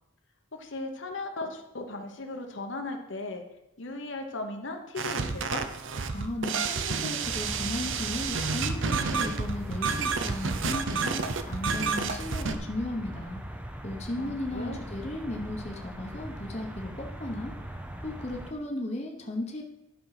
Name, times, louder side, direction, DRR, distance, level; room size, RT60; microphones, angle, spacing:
voice 1, 0.5-3.4 3.8-5.7 14.2-14.8, left 2 dB, 65° left, 4 dB, 1.1 m, -37 dB
sound 1, 5.0-12.6, right 5 dB, 70° right, 0.6 m, -30 dB
voice 2, 6.1-11.2 11.5-13.4 13.8-17.5 18.0-19.6, left 1 dB, 30° left, 1 dB, 1.0 m, -35 dB
sound 2, 7.2-18.5, equal, 5° right, 0.6 m, -40 dB
11.0 x 5.5 x 4.9 m, 0.86 s
head